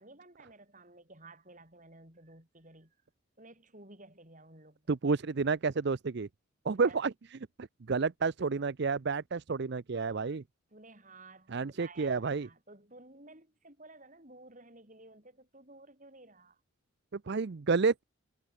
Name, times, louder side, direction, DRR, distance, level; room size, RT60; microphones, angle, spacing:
voice 1, 0.0-2.9 3.4-5.0 6.8-7.0 10.7-16.6, right 2 dB, 35° right, 6.8 m, -54 dB
voice 2, 4.9-6.3 6.6-10.4 11.5-12.5 17.1-17.9, right 4 dB, 50° right, 0.5 m, -30 dB
head